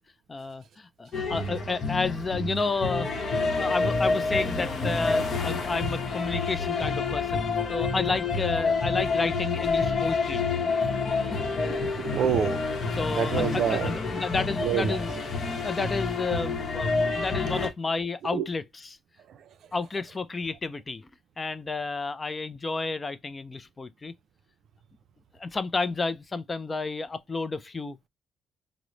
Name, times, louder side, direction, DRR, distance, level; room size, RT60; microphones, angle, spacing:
voice 1, 0.3-10.4 12.9-15.1 15.6-19.0 19.7-21.1 21.4-24.1 25.4-28.1, left 3 dB, 30° left, 0.4 m, -31 dB
sound 1, 1.1-17.7, left 4 dB, 50° left, 0.8 m, -28 dB
voice 2, 11.4-12.6 13.2-13.9 14.6-15.0 17.5-17.6 18.3-18.4, right 9 dB, 70° right, 0.4 m, -28 dB
3.0 x 2.0 x 3.8 m
cardioid pair, 90°, 0 cm